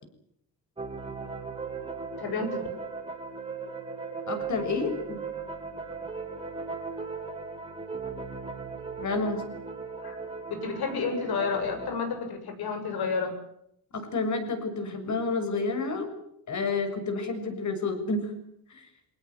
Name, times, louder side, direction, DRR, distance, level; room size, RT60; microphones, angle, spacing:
sound 1, 0.8-12.0, right 4 dB, 15° right, 3.6 m, -37 dB
voice 1, 2.2-2.7 10.0-10.2 10.5-13.3, left 5 dB, 70° left, 6 dB, 7.4 m, -30 dB
voice 2, 4.3-5.2 9.0-9.5 13.9-16.1 16.5-18.3 18.7-18.8, left 3 dB, 50° left, 7 dB, 6.6 m, -30 dB
24.5 x 19.5 x 9.4 m, 0.73 s
cardioid pair, 145°, 38 cm